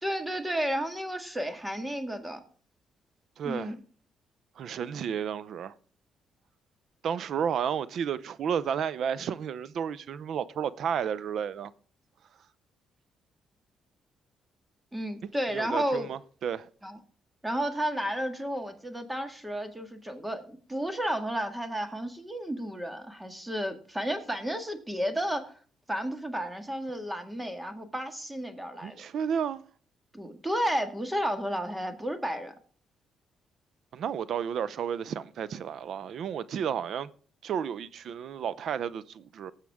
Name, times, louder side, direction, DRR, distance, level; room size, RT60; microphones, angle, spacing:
voice 1, 0.0-2.4 3.4-3.8 14.9-16.1 16.8-17.0 17.4-25.5 25.9-29.0 30.1-32.5, equal, 10° right, 1.8 m, -32 dB
voice 2, 3.4-3.7 4.6-5.7 7.0-11.7 15.5-16.7 28.8-29.6 33.9-37.1 37.4-39.5, right 8 dB, 65° right, 0.6 m, -32 dB
19.0 x 7.3 x 3.6 m
cardioid pair, 90°, 0 cm